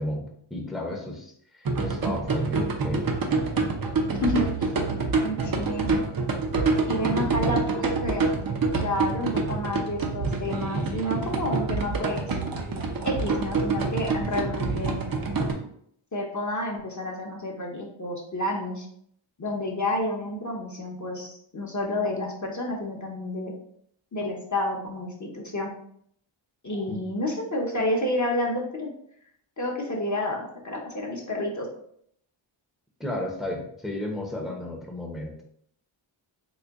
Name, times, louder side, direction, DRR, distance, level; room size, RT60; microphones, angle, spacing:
voice 1, 0.0-3.1 26.9-27.0 33.0-35.4, left 1 dB, ahead, -1 dB, 0.6 m, -33 dB
sound 1, 1.6-15.5, right 3 dB, 45° right, 0.6 m, -27 dB
voice 2, 4.1-4.5 5.2-5.9 6.9-8.4 8.8-12.4 13.0-15.0 16.1-18.9 19.4-23.5 24.1-25.7 26.6-28.9 29.6-31.7, left 1 dB, 35° left, -1 dB, 0.7 m, -30 dB
3.9 x 2.2 x 3.4 m, 0.67 s
wide cardioid pair, 90°, 49 cm